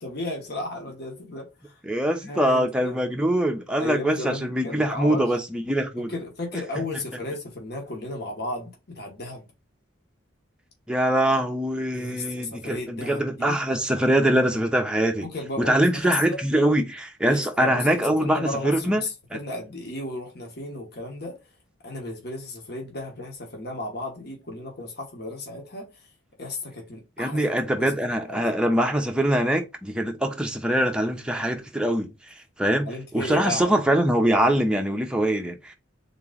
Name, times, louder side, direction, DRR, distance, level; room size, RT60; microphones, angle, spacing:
voice 1, 0.0-1.7 2.2-3.0 3.8-5.3 6.0-9.4 11.9-13.6 15.2-16.4 17.2-21.4 21.8-25.8 26.4-27.4 27.8-27.9 28.3-28.4 32.8-33.8, left 2 dB, 50° left, 1.2 m, -34 dB
voice 2, 1.8-6.2 10.9-15.3 15.6-19.0 19.3-19.4 27.2-32.9 33.1-35.7, right 1 dB, 5° right, 0.6 m, -23 dB
3.9 x 3.0 x 3.7 m
head